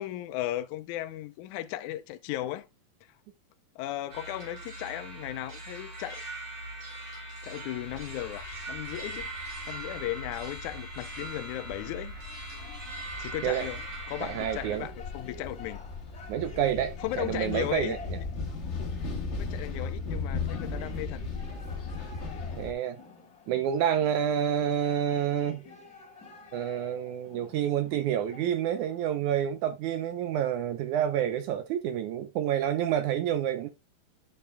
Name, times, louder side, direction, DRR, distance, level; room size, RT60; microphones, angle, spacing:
voice 1, 0.0-2.7 3.8-6.2 7.4-9.3 9.7-12.2 13.2-15.8 17.0-18.2 19.3-21.2, left 14 dB, 80° left, 1.8 m, -36 dB
sound 1, 4.1-14.8, right 2 dB, 60° right, 4.9 m, -41 dB
sound 2, 7.8-22.7, left 4 dB, 55° left, 0.7 m, -38 dB
sound 3, 12.1-29.0, left 5 dB, 30° left, 2.0 m, -50 dB
voice 2, 14.2-14.9 16.3-18.0 22.5-23.0 23.5-25.6 26.5-33.7, right 10 dB, 75° right, 1.9 m, -28 dB
10.0 x 7.0 x 2.2 m
omnidirectional pair, 4.0 m